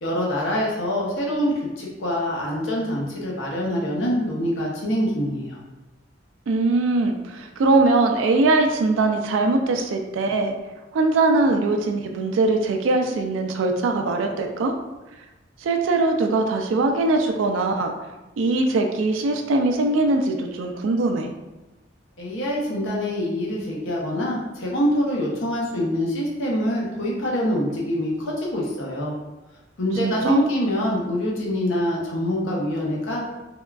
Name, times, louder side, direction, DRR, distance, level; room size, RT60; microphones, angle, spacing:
voice 1, 0.0-5.6 22.2-29.1 29.8-33.2, equal, 85° left, -3 dB, 0.7 m, -25 dB
voice 2, 6.5-10.5 10.9-14.7 15.6-17.9 18.4-21.3 30.0-30.5, right 2 dB, 85° right, 4 dB, 0.3 m, -21 dB
3.5 x 2.2 x 2.3 m, 1.1 s
head